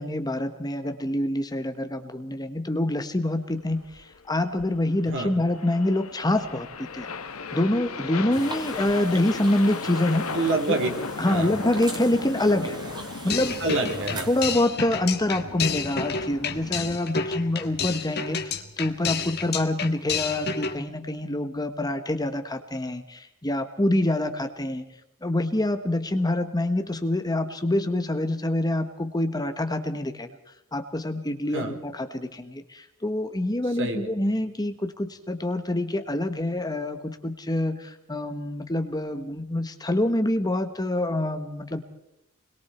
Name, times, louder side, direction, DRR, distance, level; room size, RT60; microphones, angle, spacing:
voice 1, 0.0-7.1 7.5-10.2 10.7-10.8 11.2-12.8 13.2-13.6 14.3-24.9 25.2-30.3 30.7-41.8, left 1 dB, 20° left, 7 dB, 1.3 m, -26 dB
sound 1, 3.6-17.0, left 4 dB, 75° left, 1.4 m, -36 dB
sound 2, 8.3-14.5, right 1 dB, 20° right, 2.8 m, -41 dB
voice 2, 10.3-10.9 11.2-11.5 13.6-14.3 31.5-31.8 33.8-34.1, right 2 dB, 60° right, 3 dB, 3.7 m, -27 dB
sound 3, 13.3-20.8, left 5 dB, 50° left, 1.8 m, -30 dB
28.5 x 22.0 x 4.4 m, 0.82 s
head